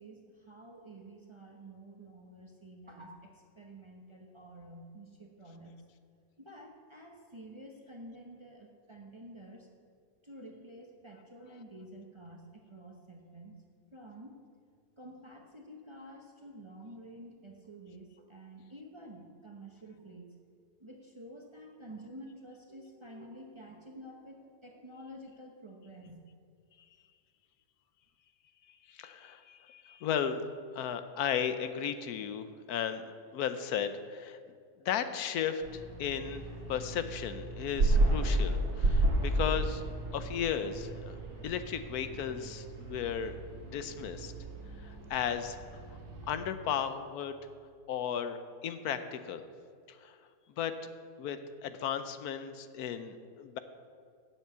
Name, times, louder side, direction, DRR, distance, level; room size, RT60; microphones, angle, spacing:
voice 1, 0.0-5.8 6.4-9.7 10.2-13.5 13.9-14.4 15.0-20.3 20.8-26.3, right 1 dB, 25° right, 1 dB, 0.8 m, -50 dB
voice 2, 28.7-30.4 30.7-33.0 33.3-34.4 34.8-39.8 40.1-41.2 41.4-43.4 43.7-44.3 44.8-46.0 46.3-47.4 47.9-49.4 49.9-50.2 50.6-50.9 51.2-53.6, left 8 dB, 80° left, 10 dB, 1.1 m, -35 dB
sound 1, 35.6-46.4, right 1 dB, 80° right, 2.0 m, -33 dB
7.9 x 7.4 x 8.0 m, 2.2 s
omnidirectional pair, 1.6 m